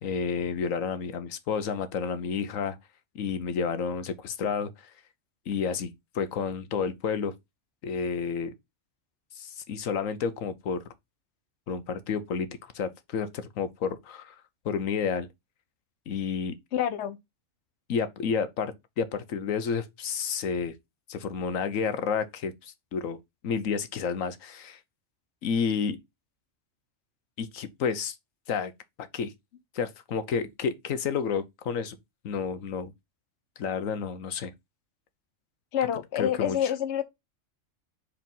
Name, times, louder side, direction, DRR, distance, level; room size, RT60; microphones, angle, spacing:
voice 1, 0.0-2.8 3.1-4.9 5.5-5.9 6.1-7.3 7.8-8.5 9.3-10.8 11.7-12.5 12.7-15.3 16.1-16.6 17.9-20.7 21.1-23.2 23.4-24.8 25.4-26.0 27.4-28.1 28.5-28.7 29.0-29.3 29.7-32.0 32.2-32.9 33.6-34.5 36.2-36.7, left 6 dB, 85° left, 1.3 m, -30 dB
voice 2, 16.7-17.2 35.7-37.0, left 10 dB, 65° left, 1.0 m, -27 dB
5.1 x 4.4 x 5.4 m
omnidirectional pair, 1.3 m